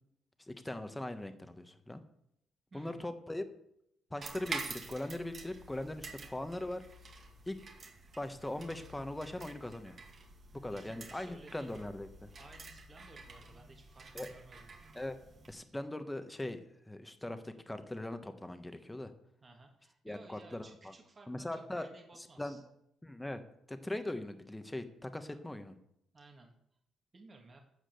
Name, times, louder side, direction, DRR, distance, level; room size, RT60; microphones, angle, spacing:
voice 1, 0.5-2.0 2.7-3.4 4.1-6.8 7.5-7.6 8.2-10.0 10.6-12.3 14.1-14.3 14.9-15.2 15.5-16.6 16.9-19.1 20.0-20.9 21.3-21.9 22.1-22.6 23.0-23.4 23.7-25.8, left 1 dB, 10° left, 8 dB, 1.3 m, -40 dB
voice 2, 2.7-3.1 10.7-11.8 12.4-14.7 19.4-22.6 25.3-25.4 26.1-26.5 27.1-27.6, right 3 dB, 30° right, 2 dB, 2.0 m, -57 dB
sound 1, 4.2-15.5, right 3 dB, 50° right, 2.1 m, -48 dB
13.0 x 5.1 x 7.9 m, 0.77 s
cardioid pair, 90°, 0 cm